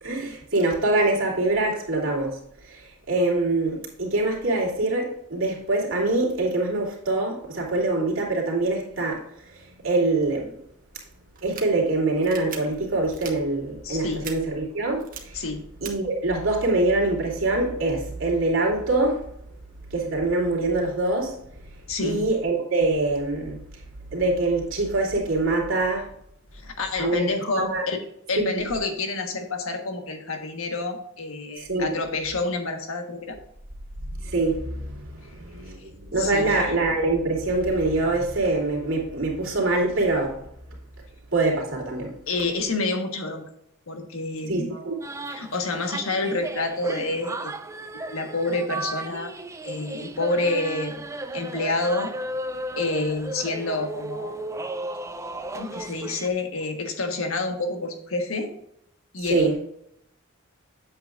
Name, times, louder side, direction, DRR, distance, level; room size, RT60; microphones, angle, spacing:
voice 1, 0.0-2.4 2.6-2.8 3.1-9.2 9.5-10.5 11.4-15.4 15.8-19.2 19.9-21.4 22.0-23.6 24.1-26.1 27.0-27.8 28.4-28.6 31.6-31.9 34.2-40.4 41.3-42.2 44.5-45.0 59.3-59.5, right 2 dB, 70° right, -2 dB, 2.8 m, -24 dB
sound 1, 11.4-11.6 12.2-12.6 13.1-13.3 14.2-14.3 15.0-15.2 15.8-15.9, right 7 dB, 45° right, 1.3 m, -37 dB
voice 2, 13.8-14.2 15.3-15.6 21.9-22.3 26.6-28.0 28.3-33.4 36.2-36.6 42.3-43.4 43.9-44.8 45.3-47.5 47.9-49.3 49.6-51.1 51.3-52.1 52.8-54.4 55.5-58.5 59.1-59.6, left 2 dB, 80° left, 4 dB, 1.5 m, -28 dB
sound 2, 45.0-56.3, right 2 dB, 15° right, 0.5 m, -35 dB
8.8 x 7.7 x 2.5 m, 0.72 s
head